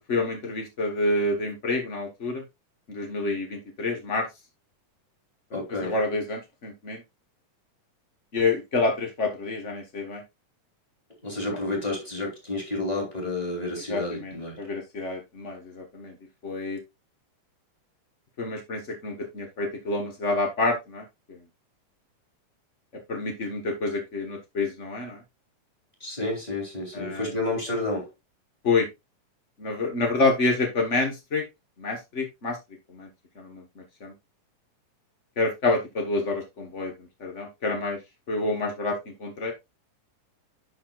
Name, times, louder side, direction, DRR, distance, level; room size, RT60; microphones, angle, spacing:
voice 1, 0.1-2.4 2.9-4.3 5.5-7.0 8.3-10.2 13.9-16.1 16.4-16.8 18.4-21.0 23.1-25.2 26.9-27.3 28.6-28.9 29.6-31.4 31.8-32.6 32.9-33.1 33.4-33.6 34.0-34.1 35.4-36.9 37.2-38.0 38.3-39.5, left 3 dB, 75° left, 0.6 m, -28 dB
voice 2, 5.5-5.9 11.2-14.6 26.0-28.1, left 2 dB, 10° left, 3.2 m, -30 dB
10.5 x 5.7 x 2.5 m
omnidirectional pair, 3.8 m